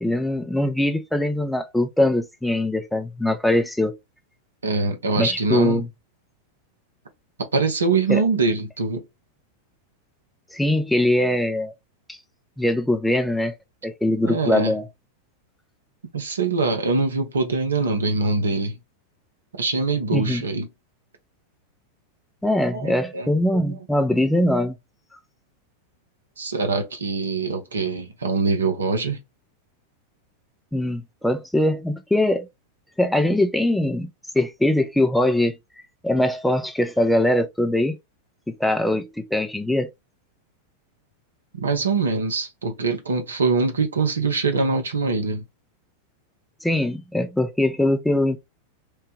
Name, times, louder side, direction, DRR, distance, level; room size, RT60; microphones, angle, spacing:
voice 1, 0.0-4.0 5.2-5.9 8.1-8.2 10.5-11.7 12.1-12.2 12.6-13.5 13.8-14.8 20.1-20.4 22.4-24.7 30.7-32.5 33.0-34.1 34.3-35.6 36.0-38.0 38.5-39.9 46.6-48.4, left 1 dB, 5° left, 0.4 m, -22 dB
voice 2, 4.6-5.9 7.4-9.0 14.2-14.7 16.1-18.8 19.6-20.7 22.7-23.8 26.4-29.2 41.5-45.4, right 4 dB, 70° right, 0.7 m, -23 dB
3.1 x 2.1 x 3.0 m
figure-of-eight pair, 90°, 0 cm